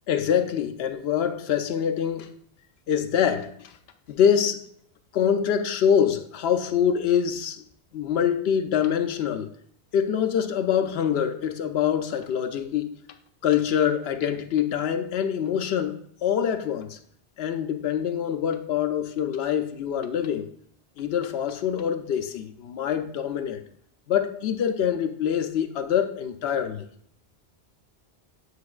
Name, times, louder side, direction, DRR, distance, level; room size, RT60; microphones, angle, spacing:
voice 1, 0.1-2.3 2.9-3.7 4.1-4.6 5.1-7.6 7.9-9.5 9.9-13.0 13.4-17.0 17.4-20.5 21.0-23.6 24.1-26.9, left 8 dB, 75° left, 0.8 m, -25 dB
8.4 x 4.7 x 2.3 m
omnidirectional pair, 1.1 m